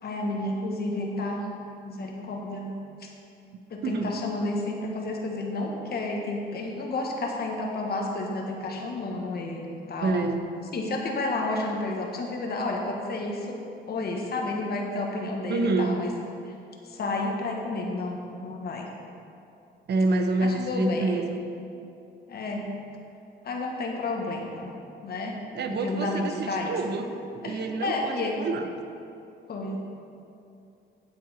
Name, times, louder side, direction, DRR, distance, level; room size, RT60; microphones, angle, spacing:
voice 1, 0.0-1.5 1.8-2.7 3.0-3.1 3.7-10.1 10.7-13.6 13.9-16.1 16.5-16.6 16.8-18.9 20.4-21.0 22.3-22.6 23.4-24.7 25.0-25.4 25.7-26.8 27.4-28.4 29.5-29.8, left 2 dB, 50° left, 0 dB, 1.4 m, -31 dB
voice 2, 3.8-4.1 10.0-10.4 15.5-16.0 19.9-21.4 25.5-28.7, right 3 dB, 55° right, 6 dB, 0.9 m, -27 dB
9.2 x 7.6 x 4.3 m, 2.6 s
cardioid pair, 90°, 20 cm